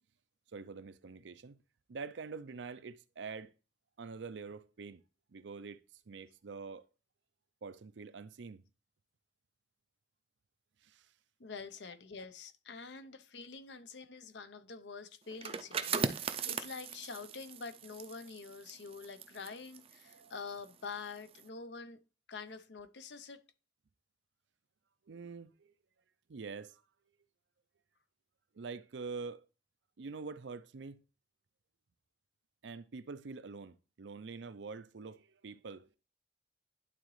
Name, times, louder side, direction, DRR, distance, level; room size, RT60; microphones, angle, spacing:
voice 1, 0.5-1.6 1.9-3.5 4.0-5.0 5.3-6.8 7.6-8.6 10.8-11.1 20.1-20.3 25.1-25.7 26.3-26.8 28.5-29.5 30.0-31.0 32.6-36.0, right 4 dB, 80° right, 0.5 m, -45 dB
voice 2, 11.4-22.0 22.3-23.4, left 4 dB, 75° left, 0.8 m, -46 dB
sound 1, 15.3-20.8 21.2-21.4, right 5 dB, 35° right, 0.5 m, -39 dB
11.0 x 4.0 x 3.2 m
head